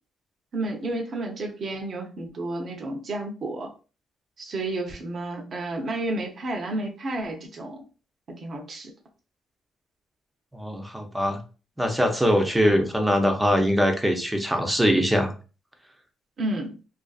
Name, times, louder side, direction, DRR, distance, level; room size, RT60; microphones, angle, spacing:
voice 1, 0.5-3.7 4.4-7.8 8.3-8.9 12.6-12.8 16.4-16.8, right 2 dB, 50° right, 2 dB, 0.7 m, -31 dB
voice 2, 10.5-11.4 11.8-15.3, equal, 10° right, 4 dB, 0.6 m, -22 dB
2.5 x 2.4 x 2.4 m, 0.35 s
cardioid pair, 90°, 0 cm